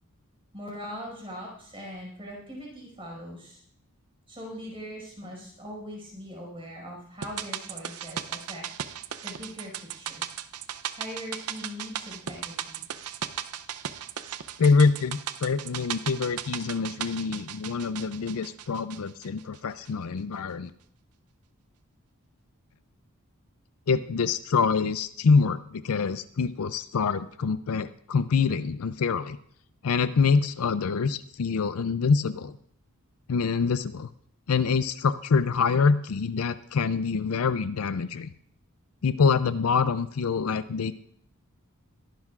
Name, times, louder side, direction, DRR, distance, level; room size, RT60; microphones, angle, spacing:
voice 1, 0.5-3.6 4.3-8.6 9.2-10.3 10.9-12.9, equal, 25° right, -1 dB, 5.4 m, -41 dB
sound 1, 7.2-19.6 19.8-19.9, right 9 dB, 90° right, 0.6 m, -37 dB
voice 2, 14.6-20.7 23.9-29.4 29.8-32.6 33.3-34.1 34.5-38.3 39.0-40.9, left 5 dB, 75° left, 13 dB, 0.5 m, -25 dB
22.0 x 12.0 x 2.4 m, 0.66 s
head